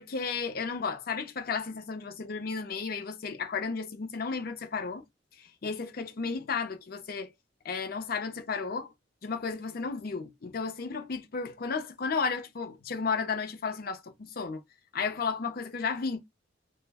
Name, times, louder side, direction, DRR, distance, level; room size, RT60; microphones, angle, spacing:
voice 1, 0.0-5.1 5.4-7.3 7.6-8.9 9.2-14.6 14.9-16.2, left 5 dB, 55° left, 0.5 m, -33 dB
2.4 x 2.1 x 3.4 m
head